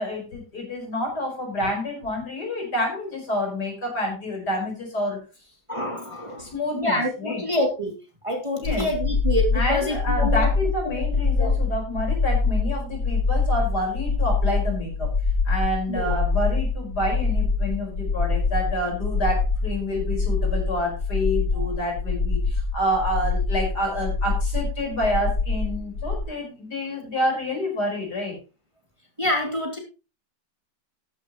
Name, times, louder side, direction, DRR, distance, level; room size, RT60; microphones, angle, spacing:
voice 1, 0.0-5.2 6.4-6.9 7.2-7.4 8.6-8.9 9.5-15.1 15.5-28.3, left 1 dB, 65° left, 1 dB, 5.4 m, -28 dB
voice 2, 5.7-7.9 8.2-10.5 10.8-11.0 11.4-11.5 15.9-16.2 21.5-21.7 29.2-29.8, left 1 dB, 15° right, 1 dB, 2.6 m, -27 dB
sound 1, 8.6-26.2, left 4 dB, 85° left, 2.0 m, -24 dB
13.5 x 10.5 x 3.0 m, 0.31 s
omnidirectional pair, 1.9 m